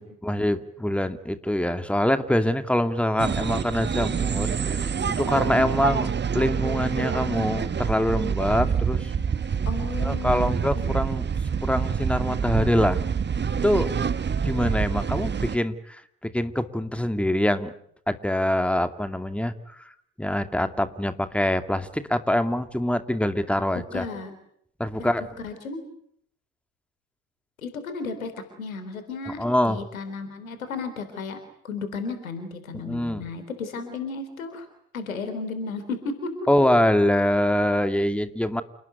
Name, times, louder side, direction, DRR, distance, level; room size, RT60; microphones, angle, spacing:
voice 1, 0.0-9.1 10.0-11.3 11.6-13.0 13.6-13.9 14.4-17.7 18.1-19.5 19.8-19.9 20.2-24.0 24.8-25.2 29.4-29.8 32.8-33.2 36.5-38.6, left 1 dB, 5° left, 9 dB, 2.4 m, -24 dB
sound 1, 3.2-15.6, right 6 dB, 25° right, 1.4 m, -26 dB
voice 2, 5.3-5.7 9.7-11.0 23.7-24.3 25.0-25.1 25.4-25.9 27.6-28.3 28.6-31.4 31.6-34.7 34.9-36.3, left 4 dB, 80° left, 9 dB, 3.7 m, -34 dB
29.0 x 19.5 x 9.4 m, 0.68 s
figure-of-eight pair, 55°, 41 cm